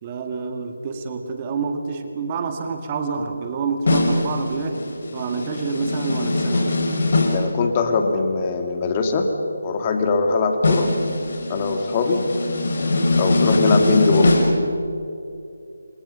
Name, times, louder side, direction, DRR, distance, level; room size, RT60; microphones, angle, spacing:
voice 1, 0.0-4.9 5.1-6.7, right 4 dB, 25° right, 5 dB, 2.2 m, -27 dB
sound 1, 3.9-7.5 10.6-14.5, left 2 dB, 55° left, 5.9 m, -21 dB
voice 2, 7.3-9.3 9.6-10.9 11.5-12.3 13.2-14.4, left 4 dB, 25° left, 4 dB, 2.4 m, -21 dB
29.5 x 27.5 x 5.7 m, 2.7 s
figure-of-eight pair, 160°, 0 cm